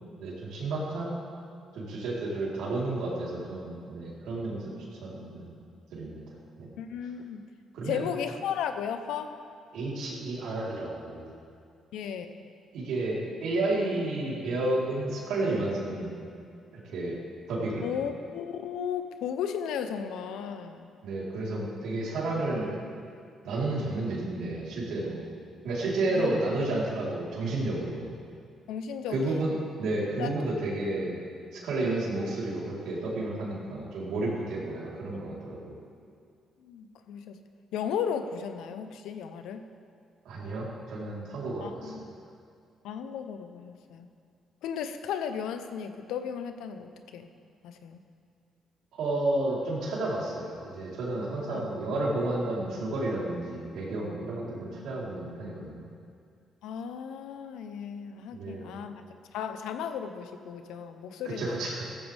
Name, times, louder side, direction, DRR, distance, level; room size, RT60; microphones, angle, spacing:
voice 1, 0.2-1.1 1.7-4.7 5.0-5.5 5.9-6.2 6.6-6.7 7.7-8.1 9.7-11.3 12.7-16.2 16.7-17.2 17.5-18.0 21.0-22.8 23.4-25.3 25.6-28.1 29.1-31.2 31.5-35.7 40.2-41.9 49.0-55.8 58.3-58.8 61.4-61.9, right 2 dB, 85° right, -5 dB, 4.1 m, -31 dB
voice 2, 6.8-7.4 7.8-9.4 11.9-12.4 17.8-20.9 26.1-26.3 28.7-29.5 30.2-30.5 36.6-37.4 37.7-39.6 41.6-42.1 42.8-44.1 44.6-47.3 47.6-48.0 51.5-51.6 56.6-59.1 59.3-61.7, left 7 dB, 90° left, 8 dB, 0.9 m, -35 dB
16.5 x 14.5 x 3.6 m, 2.3 s
cardioid pair, 90°, 0 cm